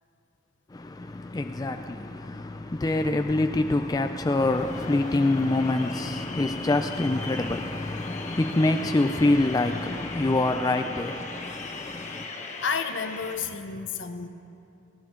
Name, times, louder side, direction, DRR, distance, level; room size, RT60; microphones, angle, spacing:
voice 1, 0.7-12.3, left 2 dB, 20° left, 0.3 m, -26 dB
sound 1, 4.4-13.4, left 3 dB, 35° left, 1.4 m, -39 dB
voice 2, 12.6-14.3, left 5 dB, 65° left, 0.9 m, -31 dB
18.0 x 17.5 x 3.8 m
head